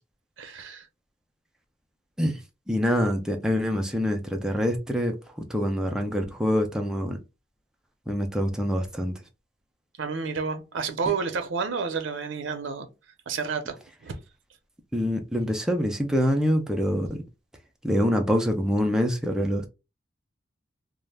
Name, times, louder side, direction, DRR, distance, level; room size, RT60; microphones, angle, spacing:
voice 1, 0.4-0.9 10.0-12.9 13.3-14.2, right 5 dB, 90° right, 0.5 m, -30 dB
voice 2, 2.7-5.2 5.5-7.2 8.1-9.1 14.9-17.1 17.8-19.7, equal, 5° right, 0.4 m, -25 dB
2.3 x 2.1 x 3.3 m
head